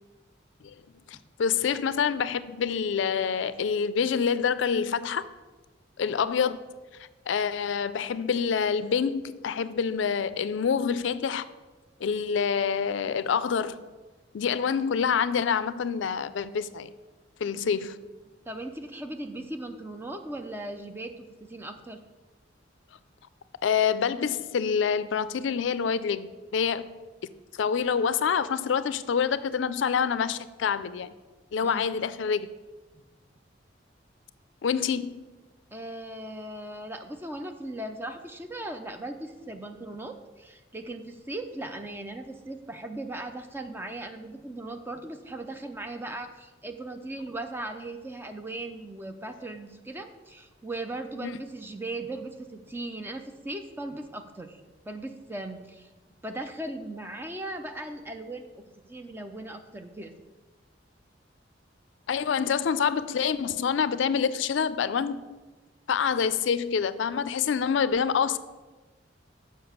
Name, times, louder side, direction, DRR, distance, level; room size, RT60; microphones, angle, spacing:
voice 1, 1.1-5.2 6.0-6.6 7.3-11.5 12.0-13.8 14.3-16.9 17.4-18.0 23.6-26.9 27.5-31.1 31.5-32.5 34.6-35.2 51.2-51.3 62.1-65.2 65.9-68.4, left 6 dB, 80° left, 15 dB, 0.4 m, -26 dB
voice 2, 18.5-22.0 31.6-31.9 35.7-54.6 54.9-55.9 56.2-58.5 58.9-60.1, right 1 dB, 10° right, 6 dB, 0.5 m, -38 dB
6.9 x 5.5 x 6.5 m, 1.2 s
head